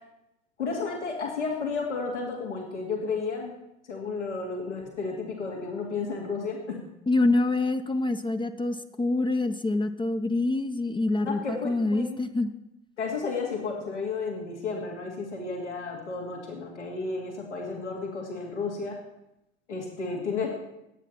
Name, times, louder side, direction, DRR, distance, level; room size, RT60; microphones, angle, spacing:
voice 1, 0.6-3.5 3.9-6.8 11.2-12.2 13.0-19.0 19.7-20.5, left 4 dB, 80° left, -1 dB, 2.4 m, -32 dB
voice 2, 7.1-12.5, left 2 dB, 15° left, 7 dB, 0.8 m, -26 dB
22.0 x 9.1 x 4.3 m, 0.86 s
figure-of-eight pair, 60°, 35 cm